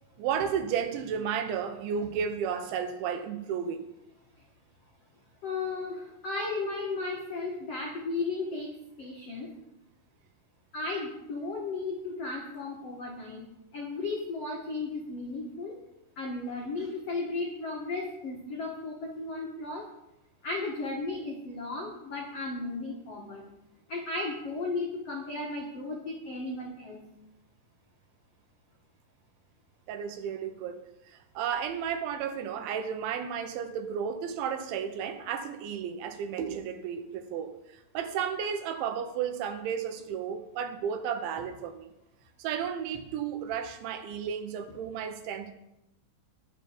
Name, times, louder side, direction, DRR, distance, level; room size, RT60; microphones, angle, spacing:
voice 1, 0.2-3.9 29.9-41.9 42.4-45.5, right 7 dB, 75° right, 8 dB, 3.1 m, -33 dB
voice 2, 5.4-9.5 10.7-13.4 13.7-15.7 16.2-19.9 20.4-23.4 23.9-27.0, left 3 dB, 85° left, -1 dB, 1.3 m, -35 dB
20.0 x 6.9 x 5.2 m, 0.87 s
omnidirectional pair, 5.8 m